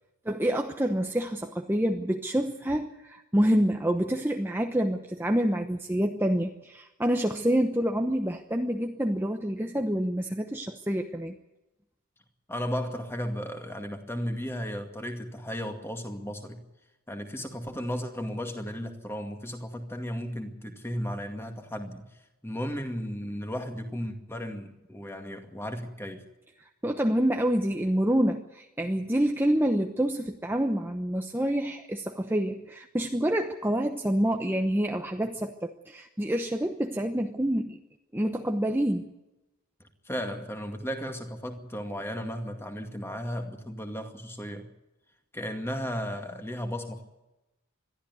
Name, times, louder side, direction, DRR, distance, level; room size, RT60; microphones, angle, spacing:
voice 1, 0.2-11.4 26.8-37.8 38.1-39.1, right 1 dB, 10° right, 4 dB, 0.9 m, -27 dB
voice 2, 12.5-16.6 17.1-22.1 22.4-26.3 40.0-44.7 45.3-47.0, equal, 10° left, 5 dB, 2.2 m, -35 dB
22.0 x 13.5 x 9.6 m, 0.99 s
head